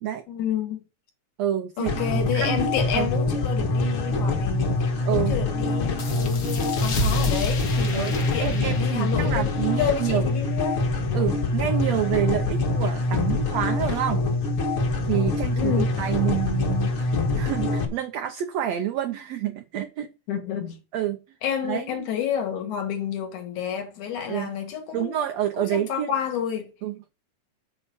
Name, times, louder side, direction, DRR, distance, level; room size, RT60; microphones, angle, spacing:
voice 1, 0.3-0.8 1.8-9.5 9.8-10.8 15.6-16.0 20.3-20.8 21.4-25.2 25.6-26.7, left 9 dB, 65° left, 2.7 m, -30 dB
voice 2, 1.4-2.7 2.9-3.1 5.1-5.3 7.9-10.2 11.1-14.4 15.1-20.1 20.9-21.2 21.6-22.1 24.3-24.5 24.9-26.1 26.8-26.9, right 11 dB, 85° right, 1.5 m, -28 dB
sound 1, 1.9-17.9, left 2 dB, 45° left, 2.0 m, -25 dB
sound 2, 6.0-11.2, left 2 dB, 90° left, 0.7 m, -32 dB
7.1 x 4.8 x 6.9 m
omnidirectional pair, 3.9 m